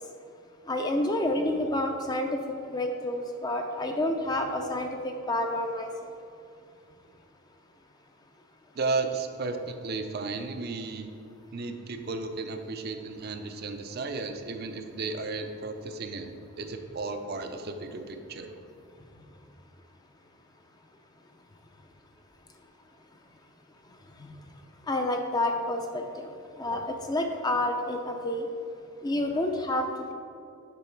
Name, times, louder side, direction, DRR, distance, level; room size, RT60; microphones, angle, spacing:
voice 1, 0.7-2.4 2.7-5.9 24.9-26.3 26.6-28.5 29.0-30.1, left 1 dB, 20° left, 4 dB, 0.4 m, -29 dB
voice 2, 8.8-11.1 11.5-16.3 16.6-18.6, right 3 dB, 45° right, 6 dB, 0.5 m, -34 dB
6.9 x 5.6 x 4.5 m, 2.5 s
head